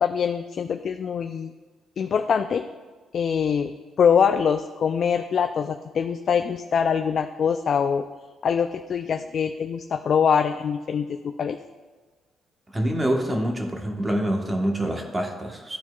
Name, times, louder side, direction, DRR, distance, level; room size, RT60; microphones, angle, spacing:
voice 1, 0.0-1.5 2.0-2.7 3.1-8.0 8.4-11.6, left 7 dB, 55° left, 7 dB, 0.3 m, -23 dB
voice 2, 12.7-15.8, right 1 dB, 20° right, 2 dB, 1.2 m, -26 dB
13.0 x 4.3 x 2.4 m, 1.4 s
cardioid pair, 90°, 0 cm